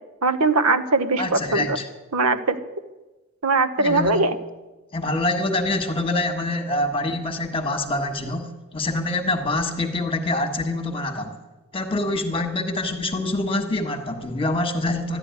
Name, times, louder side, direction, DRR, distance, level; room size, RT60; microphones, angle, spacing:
voice 1, 0.2-1.7 2.1-2.6 3.4-4.4, right 3 dB, 80° right, 10 dB, 1.0 m, -20 dB
voice 2, 1.2-1.9 3.8-4.2 4.9-11.4 11.7-15.2, left 2 dB, 25° left, 5 dB, 1.5 m, -25 dB
13.5 x 11.0 x 9.5 m, 1.1 s
head